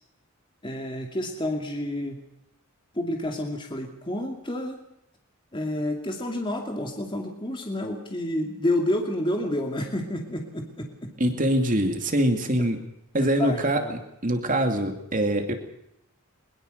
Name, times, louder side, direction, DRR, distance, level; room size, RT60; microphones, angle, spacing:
voice 1, 0.6-2.2 2.9-4.8 5.5-11.1 12.6-12.7 13.2-14.0, left 1 dB, 20° left, 2 dB, 2.5 m, -29 dB
voice 2, 11.2-12.8 13.1-15.5, right 1 dB, 35° right, 5 dB, 2.6 m, -24 dB
22.5 x 22.0 x 6.7 m, 0.79 s
head